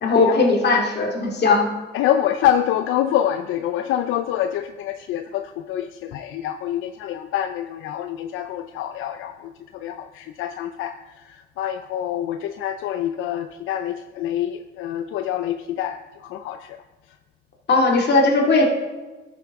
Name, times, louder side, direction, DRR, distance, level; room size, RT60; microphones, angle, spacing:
voice 1, 0.0-1.7 17.7-18.7, left 3 dB, 55° left, 1 dB, 2.2 m, -18 dB
voice 2, 1.9-16.8, left 11 dB, 85° left, 9 dB, 0.4 m, -26 dB
12.0 x 7.1 x 3.6 m, 1.2 s
cardioid pair, 90°, 20 cm